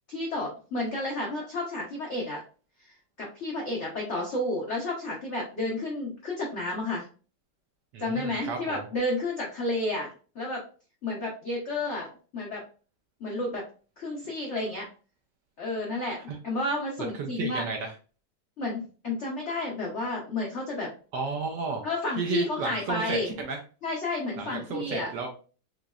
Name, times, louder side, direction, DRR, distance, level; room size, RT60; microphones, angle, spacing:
voice 1, 0.1-2.4 2.8-7.1 8.0-10.1 10.3-10.7 11.0-12.6 13.2-13.7 14.0-14.9 15.6-17.6 18.6-20.9 21.8-23.3 23.8-25.1, left 2 dB, 80° left, -2 dB, 0.6 m, -31 dB
voice 2, 7.9-8.8 16.3-16.4 17.2-17.9 21.1-21.8 22.2-23.6 24.4-25.3, right 4 dB, 70° right, 2 dB, 1.1 m, -32 dB
3.8 x 3.0 x 2.3 m, 0.37 s
omnidirectional pair, 2.3 m